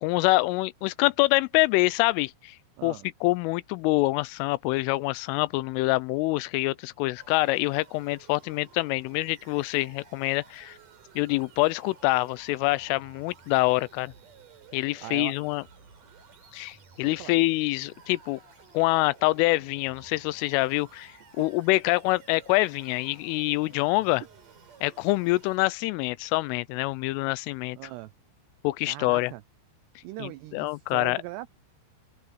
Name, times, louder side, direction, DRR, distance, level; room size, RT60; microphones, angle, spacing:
voice 1, 0.0-2.6 2.8-3.0 3.2-10.8 11.2-14.1 14.7-15.6 16.5-18.4 18.7-21.1 21.4-24.2 24.8-27.8 28.6-29.3 30.2-31.2, left 21 dB, 85° left, 3.2 m, -25 dB
sound 1, 7.2-25.6, right 5 dB, 45° right, 5.8 m, -54 dB
voice 2, 15.0-15.4 17.2-17.3 27.8-28.1 28.9-29.4 30.0-31.5, right 17 dB, 90° right, 2.4 m, -39 dB
open air
omnidirectional pair, 5.7 m